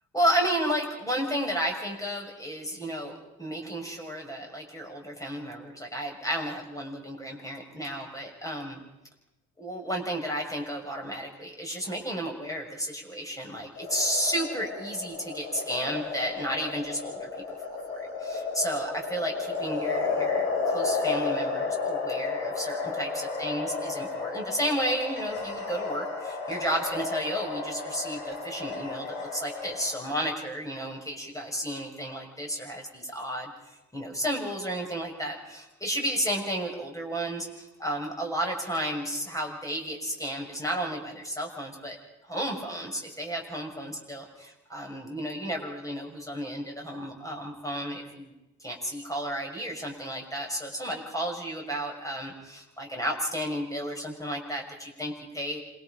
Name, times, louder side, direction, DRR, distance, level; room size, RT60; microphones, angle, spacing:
voice 1, 0.1-8.8 9.6-17.3 17.9-42.0 42.3-44.2 44.7-48.3 48.6-55.6, equal, 10° left, 1 dB, 6.3 m, -32 dB
sound 1, 13.8-30.1, left 4 dB, 75° left, 6.4 m, -32 dB
27.0 x 22.5 x 5.3 m, 0.98 s
hypercardioid pair, 45°, 37 cm